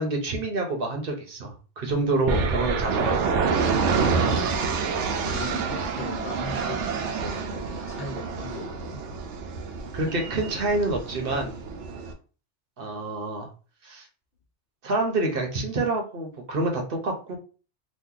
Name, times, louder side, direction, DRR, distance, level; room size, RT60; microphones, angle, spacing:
voice 1, 0.0-3.4 9.9-11.6 12.8-13.5 13.8-14.1 14.8-17.4, right 2 dB, 55° right, 2 dB, 0.9 m, -27 dB
sound 1, 2.3-12.1, right 5 dB, 80° right, 0.9 m, -27 dB
voice 2, 4.5-4.8 5.2-6.8 7.2-9.0, left 3 dB, 60° left, 3 dB, 1.0 m, -38 dB
2.9 x 2.3 x 3.7 m, 0.37 s
omnidirectional pair, 1.2 m